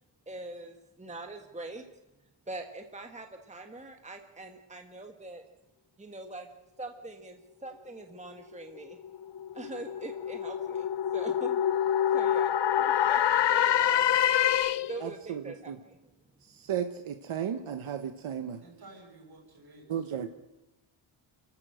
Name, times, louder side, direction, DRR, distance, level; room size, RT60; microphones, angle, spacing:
voice 1, 0.3-1.8 2.5-5.4 6.0-6.5 6.8-9.0 9.5-10.9 11.1-11.6 12.1-13.2 13.5-14.2 14.8-16.0, right 2 dB, 15° right, 5 dB, 1.4 m, -43 dB
sound 1, 8.9-15.1, left 10 dB, 60° left, 0.8 m, -26 dB
voice 2, 15.0-15.8 16.4-18.6 19.9-20.3, right 9 dB, 75° right, 8 dB, 1.3 m, -34 dB
voice 3, 18.6-20.1, right 2 dB, 50° right, 2 dB, 6.7 m, -53 dB
29.0 x 13.5 x 7.8 m, 0.97 s
wide cardioid pair, 145°, 50 cm